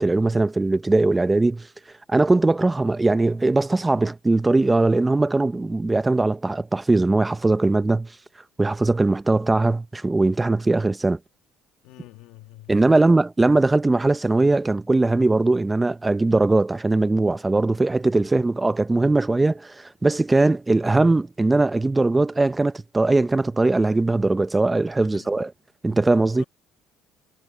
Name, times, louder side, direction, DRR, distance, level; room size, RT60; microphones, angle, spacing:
voice 1, 0.0-1.7 2.1-8.1 8.6-11.2 12.7-25.5 25.8-26.4, right 2 dB, 15° right, 0.6 m, -20 dB
voice 2, 11.8-13.2 18.3-18.4 25.0-25.3 25.8-26.0 26.4-26.5, left 16 dB, 85° left, 1.4 m, -46 dB
cardioid pair, 120°, 0 cm